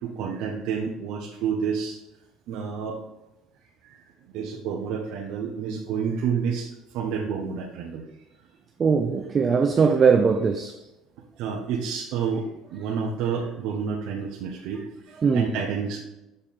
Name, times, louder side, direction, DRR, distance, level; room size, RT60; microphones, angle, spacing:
voice 1, 0.0-2.0 2.5-3.0 3.8-4.0 4.3-8.0 11.4-16.0, right 6 dB, 65° right, 0.9 m, -29 dB
voice 2, 8.8-10.8 15.2-15.5, right 5 dB, 25° right, 0.4 m, -20 dB
6.6 x 4.4 x 3.7 m
cardioid pair, 140°, 0 cm